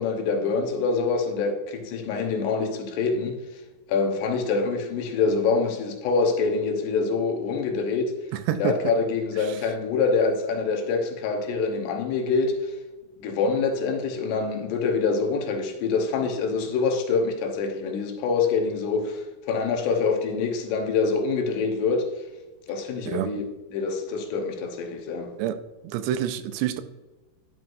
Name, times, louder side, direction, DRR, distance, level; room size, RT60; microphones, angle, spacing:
voice 1, 0.0-3.6 3.9-8.1 8.6-12.8 13.2-22.1 22.7-23.4 23.7-25.3, left 4 dB, 80° left, 3.1 m, -25 dB
voice 2, 25.9-26.8, right 11 dB, 85° right, 2.6 m, -26 dB
11.0 x 6.1 x 2.6 m
omnidirectional pair, 4.8 m